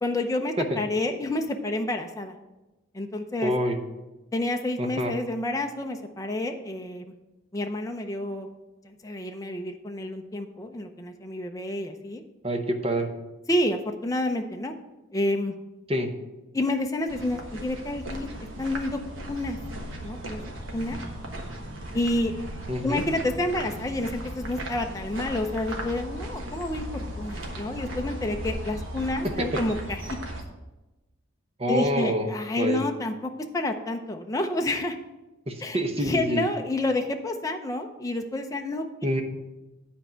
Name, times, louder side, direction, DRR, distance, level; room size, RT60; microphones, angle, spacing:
voice 1, 0.0-2.3 2.9-3.5 4.3-7.0 7.5-8.5 8.8-12.2 13.5-14.7 15.1-15.5 16.5-18.3 18.6-19.0 19.3-19.6 20.0-20.4 20.7-21.0 21.9-22.3 22.8-30.2 31.7-35.0 35.6-38.9, left 1 dB, 15° left, 4 dB, 0.5 m, -29 dB
voice 2, 3.4-3.8 4.8-5.1 12.4-13.1 15.9-16.1 22.7-23.0 29.4-29.5 31.6-32.3 32.6-32.8 35.5-36.5 39.0-39.2, equal, 30° right, 4 dB, 0.9 m, -26 dB
sound 1, 17.1-30.4, right 1 dB, 70° right, 1.3 m, -36 dB
9.5 x 4.5 x 6.2 m, 1.0 s
head